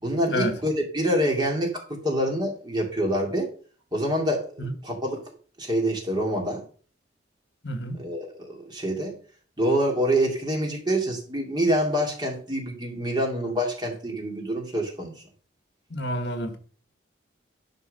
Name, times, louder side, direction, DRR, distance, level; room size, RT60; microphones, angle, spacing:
voice 1, 0.0-3.5 3.9-5.2 5.6-6.6 8.0-9.1 9.6-15.1, right 1 dB, 20° right, 2.6 m, -26 dB
voice 2, 7.6-8.0 15.9-16.6, equal, 60° left, 1.5 m, -29 dB
11.5 x 4.5 x 6.7 m
head